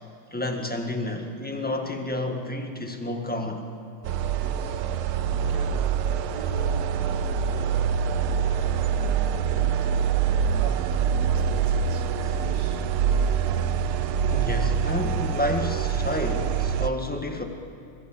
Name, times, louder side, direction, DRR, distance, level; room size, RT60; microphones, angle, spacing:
voice 1, 0.3-3.7 14.3-17.4, left 1 dB, 5° left, 4 dB, 1.5 m, -30 dB
sound 1, 4.0-16.9, right 7 dB, 85° right, 1.7 m, -25 dB
voice 2, 4.4-4.9 5.3-6.0 6.3-9.7 10.2-13.9 14.2-14.4, right 3 dB, 50° right, 5 dB, 2.3 m, -43 dB
26.5 x 21.5 x 7.8 m, 2.5 s
omnidirectional pair, 2.3 m